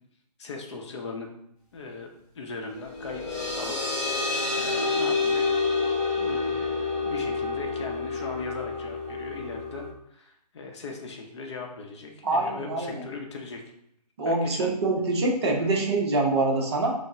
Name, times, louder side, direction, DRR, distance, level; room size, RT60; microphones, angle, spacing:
voice 1, 0.4-1.3 1.7-3.9 4.2-5.4 6.2-9.8 10.1-13.6 14.2-14.8 15.6-15.9, left 3 dB, 40° left, 2 dB, 0.7 m, -39 dB
sound 1, 2.7-9.9, left 4 dB, 5° left, 0.3 m, -28 dB
voice 2, 12.2-13.0 14.2-16.9, right 2 dB, 40° right, 0 dB, 0.9 m, -25 dB
6.3 x 2.1 x 3.6 m, 0.73 s
figure-of-eight pair, 150°, 21 cm